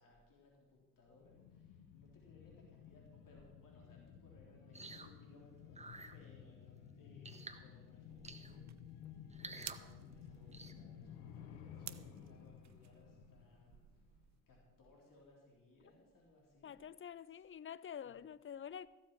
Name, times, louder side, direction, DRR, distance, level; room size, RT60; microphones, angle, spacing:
voice 1, 0.0-8.7 9.4-13.9 14.5-16.9 18.0-18.2, left 2 dB, 55° left, -2 dB, 3.9 m, -64 dB
sound 1, 1.1-14.4 14.7-14.8, left 8 dB, 80° left, 1.2 m, -55 dB
sound 2, 4.7-5.1 5.7-6.1 7.2-7.6 8.2-8.6 9.3-9.8 10.5-10.7, right 3 dB, 15° right, 1.3 m, -51 dB
sound 3, 8.0-14.4, right 12 dB, 45° right, 0.6 m, -56 dB
voice 2, 16.6-18.9, left 8 dB, 35° left, 18 dB, 0.6 m, -48 dB
15.5 x 7.4 x 6.2 m, 1.1 s
hypercardioid pair, 50°, 38 cm